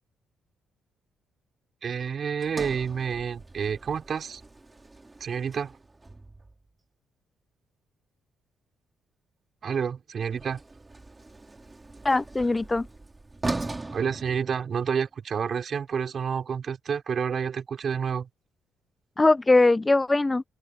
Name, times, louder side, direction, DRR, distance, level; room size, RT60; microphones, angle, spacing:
voice 1, 1.8-4.4 5.2-5.7 9.6-10.6 13.9-18.3, right 7 dB, 50° right, 5.0 m, -29 dB
Sliding door, 2.4-6.7 10.1-15.1, right 2 dB, 20° right, 3.1 m, -39 dB
voice 2, 12.0-12.9 19.2-20.4, left 2 dB, 20° left, 0.6 m, -21 dB
open air
cardioid pair, 90°, 0 cm